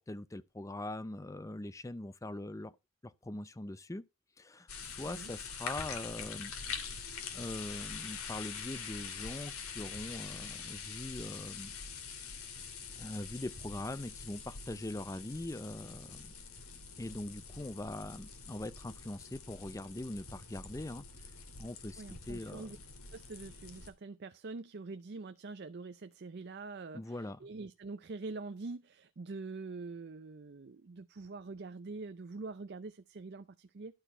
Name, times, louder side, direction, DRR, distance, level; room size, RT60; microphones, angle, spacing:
voice 1, 0.1-2.7 3.0-4.0 4.4-6.5 7.3-11.8 13.0-16.3 17.0-21.0 21.6-22.8 26.9-27.4, left 1 dB, 15° left, 0.5 m, -42 dB
sound 1, 4.7-23.9, left 5 dB, 80° left, 2.2 m, -45 dB
voice 2, 22.0-22.8 23.1-33.9, right 3 dB, 50° right, 0.5 m, -45 dB
12.0 x 4.5 x 5.5 m
head